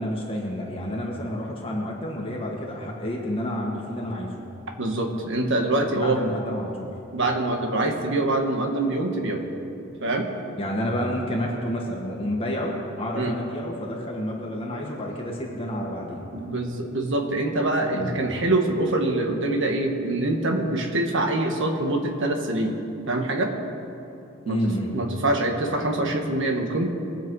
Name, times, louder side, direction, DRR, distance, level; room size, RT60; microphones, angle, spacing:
voice 1, 0.0-4.3 5.9-6.9 10.6-16.2 17.9-18.2 24.5-24.9, equal, 25° left, -2 dB, 1.6 m, -29 dB
voice 2, 4.8-6.2 7.1-9.5 10.0-10.3 13.1-13.3 16.3-22.7 23.1-23.5 24.4-24.6 24.9-26.9, right 2 dB, 60° right, 3 dB, 1.5 m, -24 dB
21.5 x 7.9 x 4.8 m, 2.9 s
head